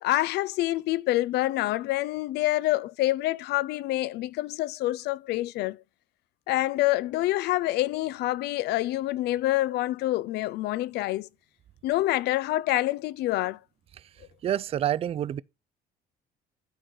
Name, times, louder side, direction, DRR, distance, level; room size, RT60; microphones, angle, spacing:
voice 1, 0.0-5.8 6.5-11.3 11.8-13.6, left 16 dB, 75° left, 0.5 m, -27 dB
voice 2, 14.4-15.4, right 11 dB, 35° right, 0.3 m, -28 dB
11.5 x 4.7 x 3.9 m
cardioid pair, 110°, 17 cm